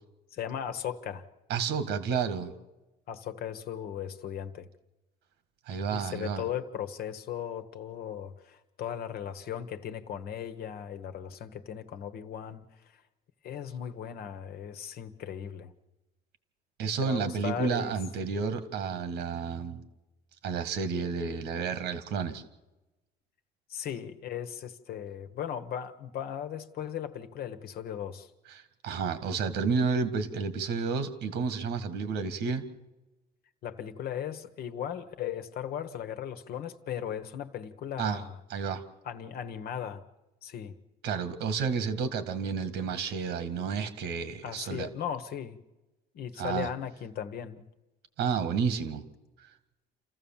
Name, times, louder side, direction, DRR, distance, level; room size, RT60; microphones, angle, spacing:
voice 1, 0.3-1.3 3.1-4.7 5.9-12.7 13.4-15.7 17.0-17.9 23.7-28.3 33.6-38.4 39.0-40.0 40.4-40.7 44.4-45.6 46.1-47.7, left 9 dB, 65° left, 9 dB, 1.3 m, -37 dB
voice 2, 1.5-2.5 5.7-6.4 16.8-19.8 20.4-22.4 28.5-32.6 38.0-38.2 38.5-38.8 41.0-44.9 46.4-46.7 48.2-49.0, right 5 dB, 80° right, 11 dB, 1.9 m, -31 dB
28.5 x 14.5 x 7.3 m, 1.1 s
cardioid pair, 110°, 17 cm